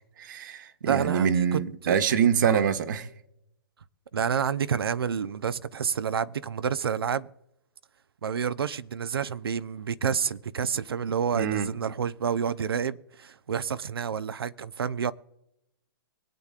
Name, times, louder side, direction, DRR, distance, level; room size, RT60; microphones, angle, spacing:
voice 1, 0.2-3.1 11.3-11.7, right 7 dB, 55° right, 1.3 m, -25 dB
voice 2, 0.8-2.0 2.4-2.6 4.1-7.3 8.2-15.1, right 7 dB, 80° right, 0.7 m, -29 dB
24.0 x 8.3 x 2.5 m
hypercardioid pair, 135°, 12 cm